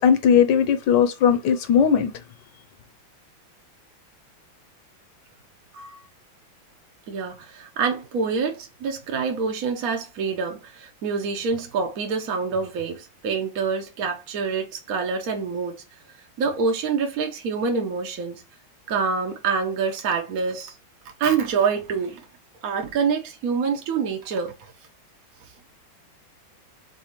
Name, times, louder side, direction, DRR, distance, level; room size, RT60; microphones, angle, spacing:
voice 1, 0.0-2.1, left 7 dB, 70° left, 1.1 m, -18 dB
voice 2, 7.1-15.8 16.4-18.4 18.9-20.8 21.2-22.2 22.6-24.5, right 5 dB, 60° right, 1.0 m, -26 dB
4.1 x 4.0 x 3.0 m
omnidirectional pair, 2.2 m